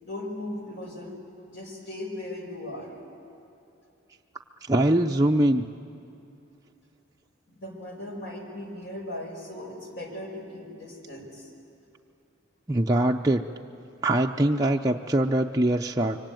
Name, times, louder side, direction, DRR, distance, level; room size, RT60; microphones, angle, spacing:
voice 1, 0.0-1.2 1.5-2.9 7.5-11.5, left 1 dB, 60° left, 2 dB, 5.2 m, -38 dB
voice 2, 4.7-5.6 12.7-13.4 14.0-16.2, right 1 dB, 20° right, 0 dB, 0.6 m, -22 dB
25.5 x 23.5 x 9.2 m, 2.7 s
head